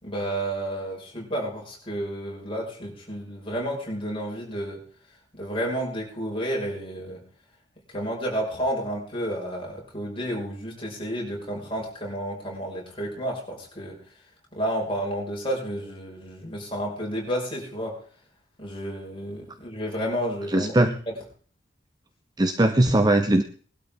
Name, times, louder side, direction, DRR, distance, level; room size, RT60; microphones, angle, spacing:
voice 1, 0.0-4.8 5.3-7.2 7.9-14.0 14.5-18.0 18.6-20.9, equal, 30° left, -2 dB, 5.5 m, -31 dB
voice 2, 20.5-20.9 22.4-23.4, right 1 dB, 20° right, 8 dB, 0.8 m, -20 dB
20.5 x 12.5 x 3.7 m, 0.43 s
head